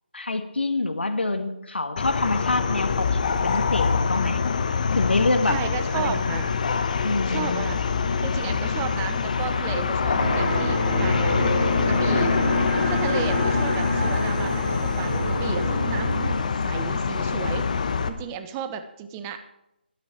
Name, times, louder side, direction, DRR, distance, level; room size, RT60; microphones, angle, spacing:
voice 1, 0.1-4.4 4.9-5.6 5.9-6.4 7.0-7.6, left 2 dB, 80° left, 7 dB, 1.8 m, -26 dB
sound 1, 2.0-18.1, left 5 dB, 45° left, 1.1 m, -25 dB
voice 2, 5.4-6.5 7.3-7.8 8.2-12.4 12.8-16.2 16.6-19.4, right 8 dB, 15° right, 9 dB, 0.8 m, -34 dB
sound 2, 10.2-16.4, right 2 dB, 65° right, 2.7 m, -28 dB
12.5 x 12.5 x 4.5 m, 0.87 s
figure-of-eight pair, 155°, 6 cm